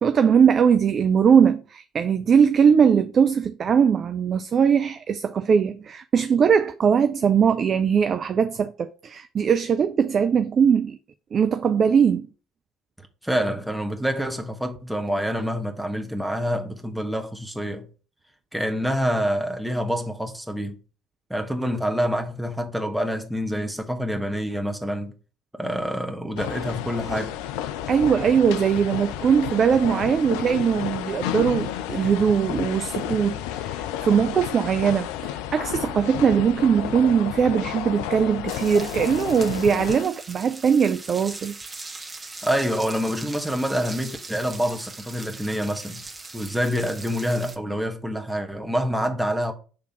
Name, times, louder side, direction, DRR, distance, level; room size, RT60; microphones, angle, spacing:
voice 1, 0.0-11.0 11.3-12.3 27.9-41.5, right 7 dB, 40° right, 0.4 m, -20 dB
voice 2, 13.2-17.9 18.5-20.8 21.3-25.1 25.6-27.4 42.4-46.0 46.3-49.5, equal, 5° right, 1.4 m, -27 dB
sound 1, 26.4-40.0, left 11 dB, 65° left, 0.4 m, -31 dB
sound 2, 38.5-47.6, right 3 dB, 20° right, 1.4 m, -40 dB
6.4 x 3.4 x 5.8 m
figure-of-eight pair, 50°, 0 cm